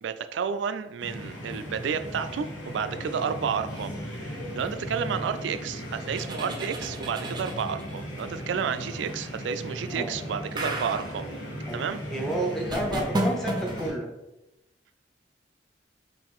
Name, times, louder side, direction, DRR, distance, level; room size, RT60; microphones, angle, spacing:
voice 1, 0.0-11.3 11.7-12.0, right 6 dB, 80° right, 11 dB, 0.3 m, -31 dB
sound 1, 1.0-13.9, equal, 80° left, 1.0 m, -37 dB
sound 2, 6.1-8.0 10.6-11.2 12.7-13.9, right 1 dB, 25° right, 0.6 m, -32 dB
voice 2, 11.7-14.1, right 1 dB, ahead, -1 dB, 0.8 m, -31 dB
5.5 x 2.6 x 3.6 m, 0.96 s
head